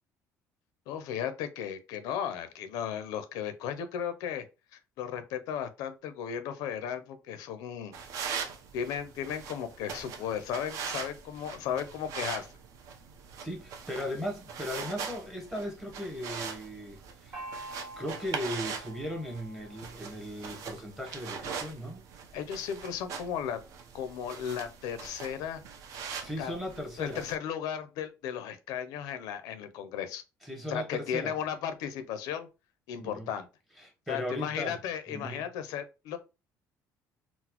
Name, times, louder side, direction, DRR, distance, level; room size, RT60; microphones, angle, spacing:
voice 1, 0.9-4.5 4.7-7.9 8.7-12.5 22.3-23.6 23.9-25.6 26.4-26.5 27.0-30.2 30.7-32.5 32.9-33.5 34.1-36.2, left 8 dB, 85° left, 0.5 m, -35 dB
sound 1, 7.9-27.4, right 6 dB, 60° right, 0.6 m, -42 dB
voice 2, 13.4-17.4 18.0-22.1 26.2-27.2 30.4-31.3 33.0-33.3 33.8-34.8 35.1-35.4, equal, 5° right, 0.8 m, -37 dB
Gong, 17.3-20.8, right 2 dB, 35° right, 1.3 m, -47 dB
3.9 x 2.0 x 2.8 m
cardioid pair, 175°, 6 cm